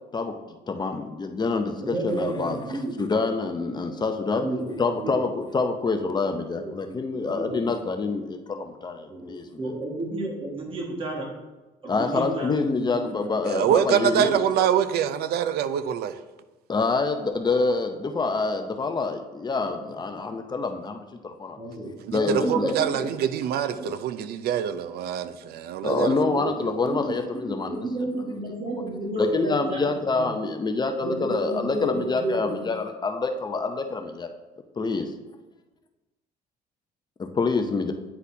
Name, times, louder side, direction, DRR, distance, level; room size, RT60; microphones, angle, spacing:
voice 1, 0.7-2.6 3.0-4.5 4.8-9.5 11.9-14.7 16.7-21.6 22.1-22.7 25.8-27.8 29.2-34.3 34.8-35.1 37.2-37.9, left 4 dB, 25° left, 0.6 m, -26 dB
voice 2, 1.8-3.1 4.3-5.2 6.5-7.6 9.1-11.3 11.8-13.0 19.6-19.7 21.6-23.1 23.7-23.9 25.8-30.3 31.0-32.7, right 2 dB, 30° right, 1.6 m, -32 dB
voice 3, 13.4-16.1 22.1-26.5, right 9 dB, 70° right, 0.5 m, -25 dB
9.7 x 4.1 x 2.7 m
cardioid pair, 110°, 17 cm